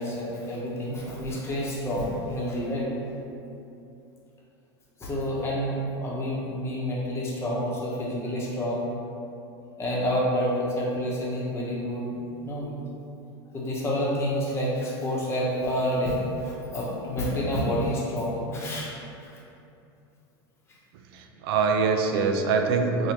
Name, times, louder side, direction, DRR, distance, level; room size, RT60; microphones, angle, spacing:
voice 1, 0.0-2.9 5.0-8.9 9.8-12.7 13.5-18.9, equal, 20° left, -5 dB, 0.9 m, -28 dB
voice 2, 21.1-23.1, right 5 dB, 70° right, 4 dB, 0.4 m, -24 dB
4.7 x 2.7 x 3.0 m, 2.7 s
supercardioid pair, 120°, 13 cm